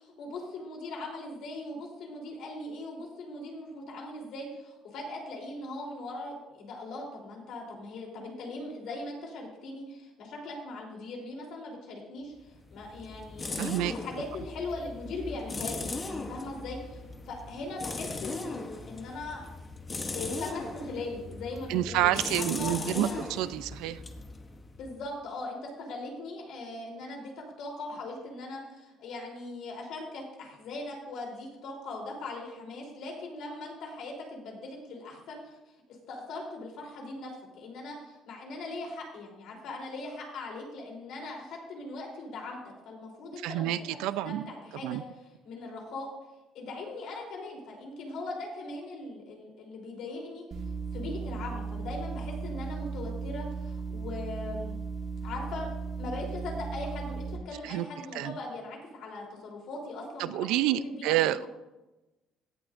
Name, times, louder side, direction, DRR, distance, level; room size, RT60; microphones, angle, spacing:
voice 1, 0.0-19.4 19.8-23.2 24.7-35.6 35.9-44.0 44.2-45.0 45.4-46.1 46.5-50.4 50.9-54.8 55.2-55.7 56.0-60.5 60.7-61.5, left 2 dB, 60° left, 0 dB, 3.4 m, -40 dB
sound 1, 12.4-25.1, left 3 dB, 20° left, 0.9 m, -39 dB
voice 2, 13.6-13.9 21.7-24.0 43.3-44.4 44.8-45.0 57.6-57.9 58.1-58.4 60.2-61.5, right 13 dB, 85° right, 14 dB, 0.5 m, -28 dB
sound 2, 50.5-57.4, right 4 dB, 40° right, 1.5 m, -36 dB
17.0 x 11.0 x 2.6 m, 1.0 s
cardioid pair, 150°, 0 cm